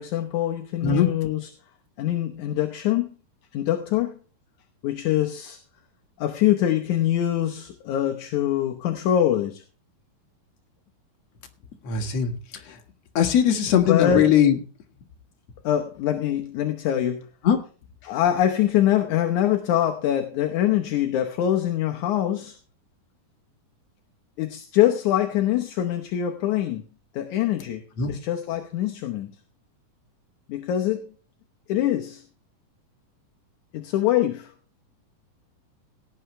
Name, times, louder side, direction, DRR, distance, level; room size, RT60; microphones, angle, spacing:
voice 1, 0.0-1.5 2.0-3.1 3.5-4.2 4.8-5.6 6.2-9.6 13.9-14.3 15.6-17.3 18.0-22.6 24.4-26.9 27.1-27.8 28.1-29.3 30.5-31.1 31.7-32.2 33.7-34.5, left 11 dB, 70° left, 2.0 m, -24 dB
voice 2, 11.8-12.3 12.7-12.8 13.1-14.5 17.4-17.6 28.0-28.1, left 8 dB, 50° left, 2.6 m, -20 dB
17.5 x 9.5 x 3.2 m
omnidirectional pair, 4.3 m